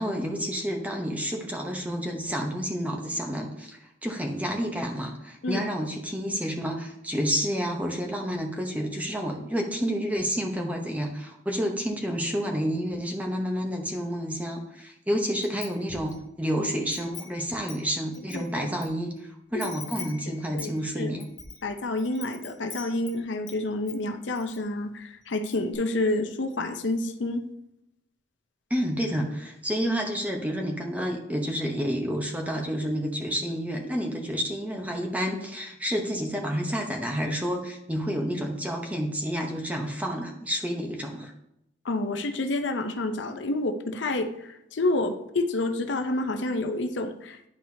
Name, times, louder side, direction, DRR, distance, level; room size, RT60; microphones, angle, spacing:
voice 1, 0.0-19.1 19.5-21.3 28.7-41.3, equal, 10° right, 2 dB, 0.8 m, -29 dB
Wind chime, 15.4-16.2 16.6-18.9 19.2-19.3 19.6-23.6 23.9-24.6 24.9-25.0 25.3-25.8, left 6 dB, 20° left, 0.8 m, -44 dB
voice 2, 18.3-18.7 19.5-21.1 21.6-27.4 41.8-47.5, left 2 dB, 75° left, 7 dB, 0.6 m, -29 dB
10.5 x 4.4 x 2.7 m, 0.79 s
head